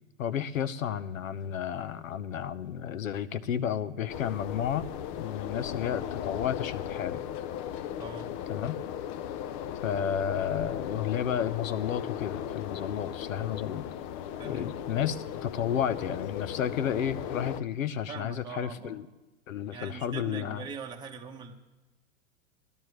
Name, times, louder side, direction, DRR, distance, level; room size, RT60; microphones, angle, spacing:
voice 1, 0.2-4.9 5.2-7.2 8.5-8.8 9.8-13.9 14.5-19.1 19.5-20.6, left 9 dB, 80° left, 14 dB, 0.9 m, -32 dB
sound 1, 4.1-17.6, left 10 dB, 30° left, 0.4 m, -37 dB
voice 2, 8.0-8.3 14.4-14.7 18.1-19.0 19.7-21.5, right 5 dB, 10° right, 1 dB, 0.9 m, -42 dB
19.0 x 12.0 x 3.2 m, 1.1 s
hypercardioid pair, 115°, 40 cm